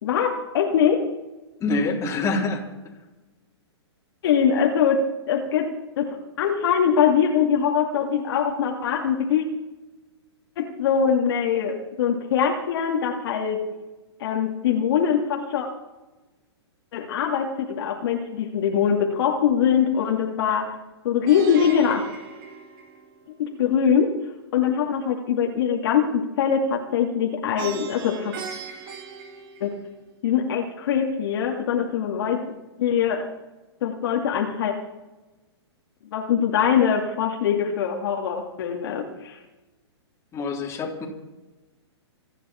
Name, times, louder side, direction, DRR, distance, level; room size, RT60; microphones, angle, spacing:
voice 1, 0.0-1.1 4.2-5.7 6.0-9.5 10.6-13.7 14.2-15.7 16.9-20.7 21.0-22.0 23.4-24.1 24.5-28.3 29.6-29.7 30.2-33.3 33.8-34.7 36.1-39.4, left 7 dB, 60° left, 1 dB, 2.5 m, -23 dB
voice 2, 1.6-2.6 40.3-41.1, left 3 dB, 20° left, -1 dB, 3.7 m, -25 dB
Plucked string instrument, 21.3-23.4 27.6-30.2, right 6 dB, 50° right, 2.7 m, -37 dB
27.5 x 10.0 x 4.5 m, 1.1 s
hypercardioid pair, 130°, 14 cm